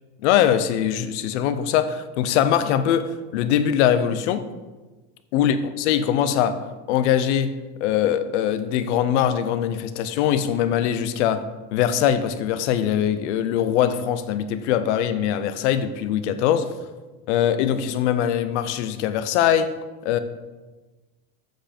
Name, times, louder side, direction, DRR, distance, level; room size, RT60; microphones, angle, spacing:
voice 1, 0.2-4.4 5.3-6.6 6.9-11.4 11.7-16.7 17.3-19.7 20.0-20.2, left 9 dB, 90° left, 11 dB, 0.7 m, -22 dB
7.7 x 5.3 x 4.3 m, 1.2 s
cardioid pair, 150°, 34 cm